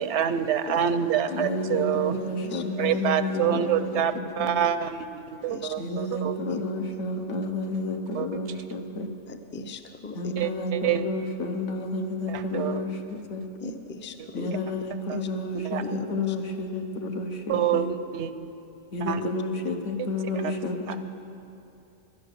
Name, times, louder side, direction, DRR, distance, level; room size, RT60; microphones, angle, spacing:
voice 1, 0.0-2.1 2.8-6.3 8.1-8.3 10.4-11.0 12.3-12.8 14.2-14.3 15.1-15.2 15.7-15.8 17.5-18.3 19.0-19.3 20.4-20.5 20.9-21.0, right 9 dB, 75° right, 11 dB, 0.9 m, -27 dB
voice 2, 1.3-4.6 5.8-9.1 10.1-13.4 14.3-17.9 18.9-21.0, left 2 dB, 80° left, 4 dB, 1.4 m, -30 dB
voice 3, 2.2-2.6 5.5-5.7 6.5-6.9 9.3-10.3 13.6-14.5 15.1-15.3 15.8-16.4, left 3 dB, 20° left, 7 dB, 0.3 m, -39 dB
12.5 x 11.0 x 6.6 m, 2.7 s
omnidirectional pair, 1.2 m